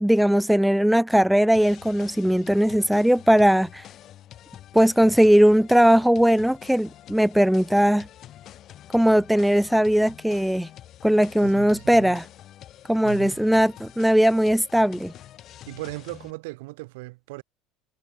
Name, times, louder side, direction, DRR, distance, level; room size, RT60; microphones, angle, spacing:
voice 1, 0.0-3.8 4.7-8.1 8.9-10.7 11.0-12.2 12.9-15.1, equal, ahead, 0.3 m, -19 dB
sound 1, 1.5-16.3, left 12 dB, 40° left, 4.7 m, -46 dB
voice 2, 11.4-12.2 13.0-13.6 15.7-17.4, right 24 dB, 90° right, 6.1 m, -38 dB
cardioid pair, 150°, 0 cm